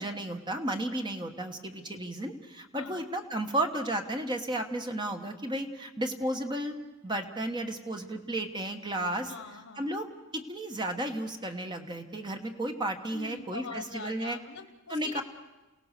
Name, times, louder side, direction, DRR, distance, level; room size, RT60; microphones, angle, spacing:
voice 1, 0.0-6.8 7.0-9.3 9.8-10.1 10.3-14.4 14.9-15.2, right 1 dB, 20° right, 5 dB, 1.2 m, -33 dB
voice 2, 2.8-3.1 9.3-10.0 13.1-15.2, left 5 dB, 85° left, 8 dB, 1.0 m, -43 dB
29.0 x 17.5 x 6.7 m, 1.1 s
head